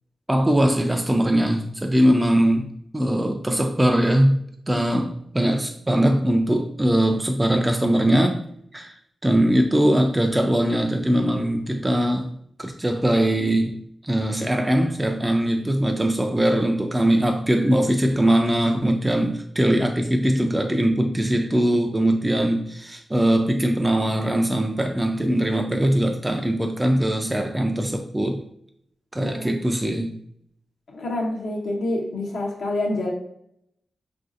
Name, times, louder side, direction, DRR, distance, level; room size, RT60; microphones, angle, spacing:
voice 1, 0.3-2.7 2.9-8.5 8.7-9.0 9.2-12.3 12.6-28.4 29.1-30.1, right 1 dB, 15° right, 4 dB, 0.3 m, -21 dB
voice 2, 30.9-33.1, left 1 dB, 80° left, -1 dB, 0.6 m, -27 dB
3.0 x 2.5 x 2.4 m, 0.71 s
cardioid pair, 60°, 0 cm